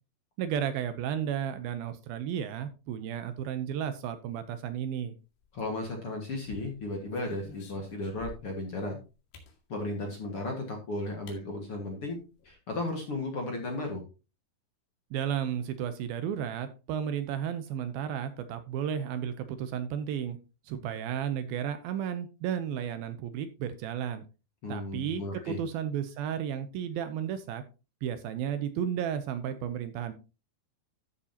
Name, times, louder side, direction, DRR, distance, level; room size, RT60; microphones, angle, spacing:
voice 1, 0.4-5.2 15.1-20.4 20.7-24.2 24.7-27.6 28.0-30.1, right 9 dB, 75° right, 10 dB, 2.4 m, -33 dB
sound 1, 5.4-6.1 6.6-8.6 9.3-9.6 10.7-10.8 11.3-11.4 11.8-11.9 12.1-12.5, left 6 dB, 80° left, 4.2 m, -51 dB
voice 2, 5.5-9.0 9.7-12.2 12.4-14.0 24.6-25.6, left 2 dB, 45° left, 1 dB, 2.0 m, -35 dB
13.5 x 7.2 x 2.9 m, 0.31 s
omnidirectional pair, 4.7 m